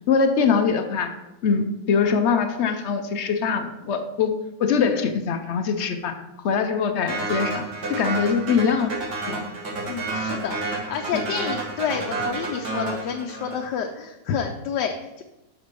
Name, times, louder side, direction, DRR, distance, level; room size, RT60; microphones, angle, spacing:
voice 1, 0.1-1.1 1.4-4.3 4.6-6.2 6.4-8.9 9.3-9.4 11.1-11.2, left 5 dB, 60° left, 8 dB, 0.7 m, -23 dB
sound 1, 7.1-13.7, right 3 dB, 85° right, 2.1 m, -30 dB
voice 2, 9.9-15.2, left 7 dB, 85° left, 4 dB, 1.2 m, -29 dB
7.2 x 6.1 x 4.5 m, 0.96 s
omnidirectional pair, 1.8 m